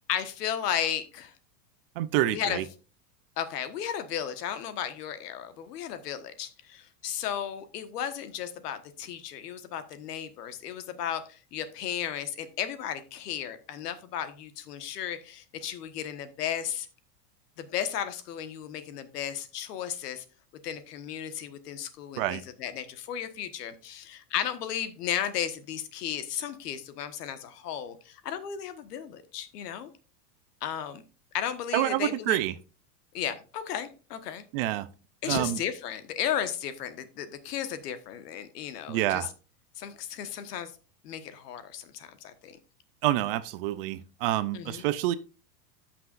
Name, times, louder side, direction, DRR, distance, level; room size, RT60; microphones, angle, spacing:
voice 1, 0.1-1.3 2.3-2.6 3.4-16.9 17.6-20.2 20.6-29.9 30.6-31.0 31.3-32.4 33.1-34.4 35.2-39.3 39.8-40.7 41.0-42.6 44.5-44.8, left 9 dB, 80° left, 1.4 m, -34 dB
voice 2, 2.0-2.6 22.2-22.4 31.7-32.6 34.5-34.9 35.2-35.6 38.9-39.3 43.0-45.2, right 14 dB, 40° right, 0.4 m, -27 dB
13.5 x 5.9 x 2.5 m
supercardioid pair, 150°, 47 cm